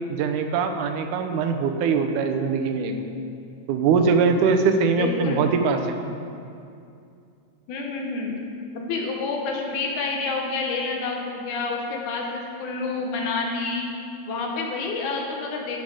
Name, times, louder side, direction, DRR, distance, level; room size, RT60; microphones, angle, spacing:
voice 1, 0.2-3.1 3.7-6.0, right 5 dB, 85° right, 6 dB, 2.1 m, -22 dB
voice 2, 5.0-5.4 7.7-8.4 8.7-13.9 14.3-15.8, left 3 dB, 75° left, 1 dB, 2.5 m, -28 dB
12.5 x 6.4 x 4.8 m, 2.5 s
omnidirectional pair, 3.5 m